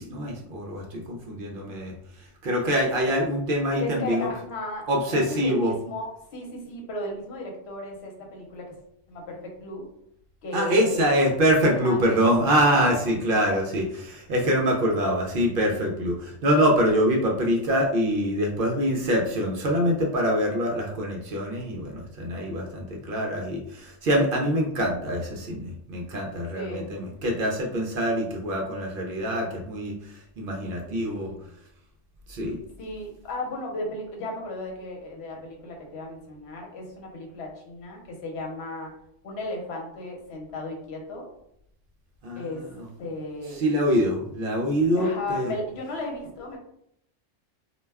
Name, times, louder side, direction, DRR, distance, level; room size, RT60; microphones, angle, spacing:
voice 1, 0.0-4.3 4.9-5.7 10.5-31.3 32.3-32.6 42.2-42.9 43.5-45.5, equal, 60° right, 0 dB, 0.6 m, -25 dB
voice 2, 3.8-4.9 5.1-8.6 9.1-9.8 10.4-11.2 11.8-12.3 12.7-13.3 26.5-26.9 30.8-31.4 32.8-38.9 39.2-41.3 42.4-42.7 43.0-43.6 44.9-46.6, left 1 dB, 70° left, 0 dB, 1.0 m, -35 dB
2.2 x 2.2 x 3.3 m, 0.73 s
omnidirectional pair, 1.2 m